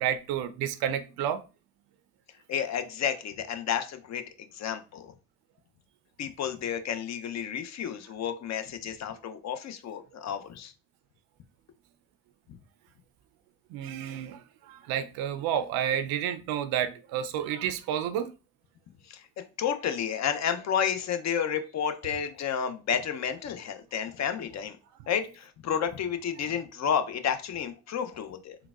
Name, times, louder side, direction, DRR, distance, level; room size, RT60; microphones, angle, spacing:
voice 1, 0.0-1.4 13.7-18.3, right 9 dB, 85° right, 0.5 m, -30 dB
voice 2, 2.5-4.2 4.5-5.1 6.2-10.7 19.1-19.2 19.6-24.8 25.1-28.6, left 8 dB, 50° left, 0.6 m, -31 dB
3.8 x 2.2 x 2.3 m
supercardioid pair, 75°, 35 cm